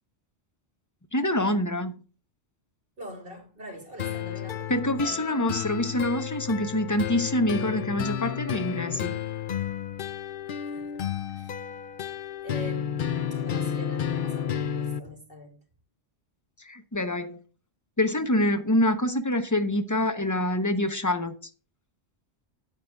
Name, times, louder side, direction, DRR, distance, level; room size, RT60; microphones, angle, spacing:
voice 1, 1.1-1.9 4.7-9.1 16.6-17.4 18.0-21.3, left 1 dB, 15° left, 1.0 m, -26 dB
voice 2, 3.0-4.7 5.0-5.2 10.5-11.1 11.3-11.6 12.4-15.6, equal, 55° right, 3.4 m, -43 dB
sound 1, 4.0-15.0, left 9 dB, 55° left, 0.7 m, -32 dB
9.4 x 9.0 x 3.5 m
omnidirectional pair, 1.1 m